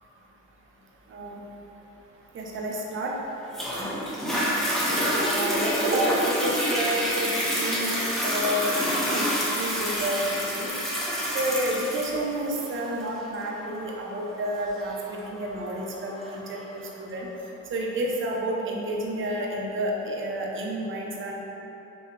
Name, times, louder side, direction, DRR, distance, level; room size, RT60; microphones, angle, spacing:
voice 1, 1.1-1.4 2.3-3.2 5.2-10.7 11.3-17.3 17.7-21.4, right 1 dB, 40° right, -2 dB, 0.6 m, -30 dB
Toilet flush, 3.5-16.6 17.2-17.3, equal, ahead, 0.8 m, -28 dB
3.8 x 2.8 x 3.1 m, 3.0 s
cardioid pair, 80°, 30 cm